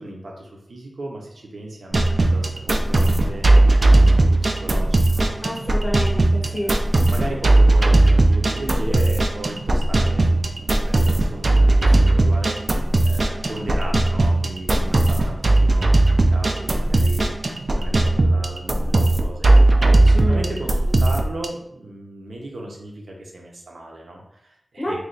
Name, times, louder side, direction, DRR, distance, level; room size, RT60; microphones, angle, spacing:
voice 1, 0.0-3.5 3.9-5.3 6.4-19.5 20.0-25.0, right 1 dB, 90° right, -1 dB, 0.8 m, -36 dB
sound 1, 1.9-21.5, right 2 dB, 50° right, 0.4 m, -17 dB
voice 2, 5.4-6.8 20.1-20.5 24.8-25.0, equal, 40° left, -2 dB, 0.6 m, -28 dB
3.2 x 2.4 x 3.9 m, 0.78 s
wide cardioid pair, 100°, 0 cm